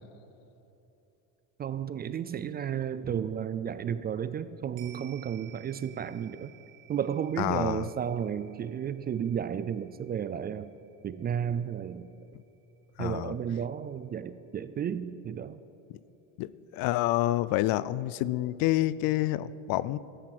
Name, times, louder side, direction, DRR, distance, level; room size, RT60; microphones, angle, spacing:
voice 1, 1.6-6.5 6.9-10.7 11.0-12.1 13.0-15.6, right 8 dB, 25° right, 15 dB, 0.3 m, -33 dB
sound 1, 4.8-13.3 13.7-13.8, right 12 dB, 85° right, 1.9 m, -57 dB
voice 2, 7.4-7.8 13.0-13.3 16.4-20.0, left 15 dB, 65° left, 19 dB, 0.6 m, -28 dB
13.5 x 10.0 x 7.7 m, 2.9 s
cardioid pair, 120°, 38 cm